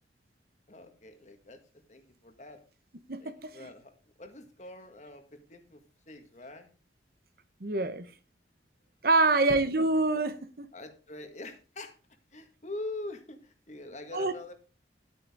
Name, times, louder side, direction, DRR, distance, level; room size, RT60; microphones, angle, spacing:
voice 1, 0.7-2.6 3.2-6.7 10.7-11.9 12.3-14.5, left 2 dB, 40° left, 1.6 m, -44 dB
voice 2, 3.1-3.7 7.6-8.1 9.0-10.7 14.1-14.3, right 3 dB, 55° right, 1.0 m, -26 dB
12.0 x 8.7 x 3.6 m
head